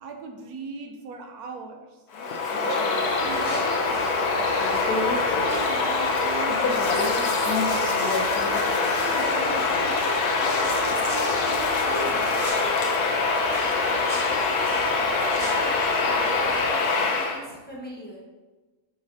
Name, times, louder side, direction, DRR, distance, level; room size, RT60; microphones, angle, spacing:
voice 1, 0.0-1.9 2.6-4.4 4.9-7.1 7.7-12.4, right 4 dB, 80° right, 3 dB, 1.3 m, -38 dB
Bird vocalization bird call bird song, 2.1-17.4, left 3 dB, 85° left, 1.4 m, -24 dB
sound 1, 3.0-16.7, right 1 dB, 25° right, 1.8 m, -40 dB
sound 2, 6.7-12.5, left 3 dB, 40° left, 0.4 m, -38 dB
voice 2, 14.6-15.1 15.6-18.2, left 1 dB, 5° left, -4 dB, 1.2 m, -42 dB
7.9 x 5.5 x 2.8 m, 1.2 s
omnidirectional pair, 1.6 m